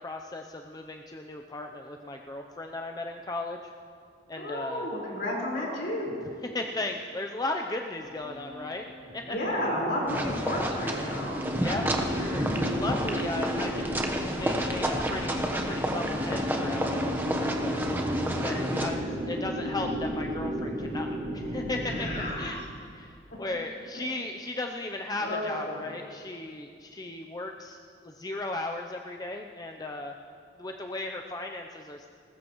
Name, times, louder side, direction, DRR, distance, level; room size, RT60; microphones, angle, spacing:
voice 1, 0.0-3.6 4.3-4.9 6.4-9.4 11.6-17.8 18.4-22.6 22.9-27.8 28.0-30.2 30.6-32.1, left 2 dB, 20° left, 3 dB, 0.5 m, -36 dB
voice 2, 4.3-6.2 9.2-11.4 21.9-22.5 25.2-25.8, left 1 dB, 55° left, -4 dB, 4.6 m, -32 dB
sound 1, 8.0-22.3, equal, 60° right, 2.5 m, -35 dB
sound 2, 10.1-18.9, right 1 dB, 10° right, 1.0 m, -30 dB
20.0 x 20.0 x 3.1 m, 2.3 s
head